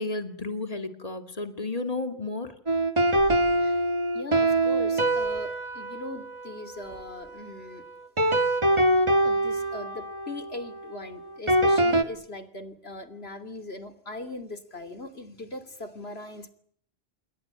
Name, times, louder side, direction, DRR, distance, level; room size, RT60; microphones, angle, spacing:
voice 1, 0.0-2.6, left 2 dB, 35° left, 2.5 m, -32 dB
sound 1, 2.7-7.5 8.2-12.0, right 1 dB, 30° right, 1.6 m, -25 dB
sound 2, 3.1-3.5 4.6-4.7 5.1-5.6 6.7-7.4, equal, 60° right, 7.4 m, -47 dB
voice 2, 4.1-7.9 9.2-16.5, left 2 dB, 80° left, 3.2 m, -40 dB
28.5 x 22.5 x 8.9 m
omnidirectional pair, 1.0 m